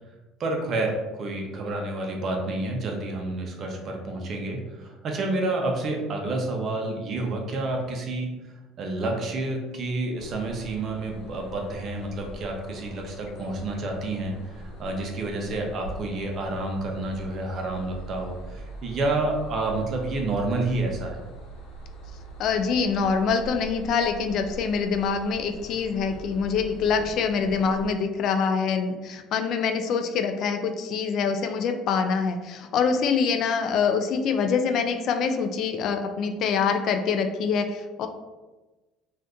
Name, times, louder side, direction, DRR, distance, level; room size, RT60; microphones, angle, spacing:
voice 1, 0.4-8.3 8.8-21.2, right 2 dB, 45° right, 1 dB, 0.6 m, -29 dB
sound 1, 10.2-27.9, right 1 dB, 90° left, 1.0 m, -42 dB
voice 2, 22.4-38.1, left 5 dB, 55° left, 6 dB, 0.3 m, -25 dB
2.6 x 2.4 x 3.5 m, 1.2 s
cardioid pair, 115°, 0 cm